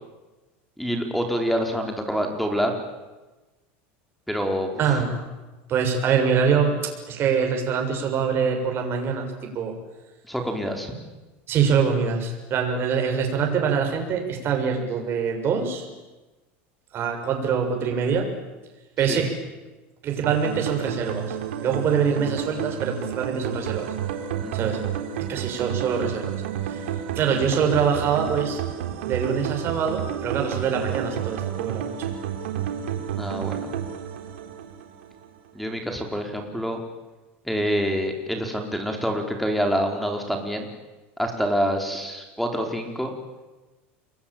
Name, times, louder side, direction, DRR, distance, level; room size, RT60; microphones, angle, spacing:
voice 1, 0.8-2.8 4.3-4.8 10.3-10.9 19.1-19.2 24.4-24.7 33.1-33.7 35.5-36.8 37.5-40.7 41.2-43.1, equal, ahead, 4 dB, 4.7 m, -26 dB
voice 2, 4.8-5.2 5.7-9.8 11.5-15.9 16.9-18.3 19.0-19.3 20.0-23.9 24.5-24.8 25.3-26.3 26.7-28.6 29.1-32.0, right 6 dB, 40° right, 3 dB, 7.0 m, -24 dB
sound 1, 20.2-35.3, right 9 dB, 90° right, 3.5 m, -31 dB
29.0 x 22.5 x 9.0 m, 1.1 s
supercardioid pair, 130°, 6 cm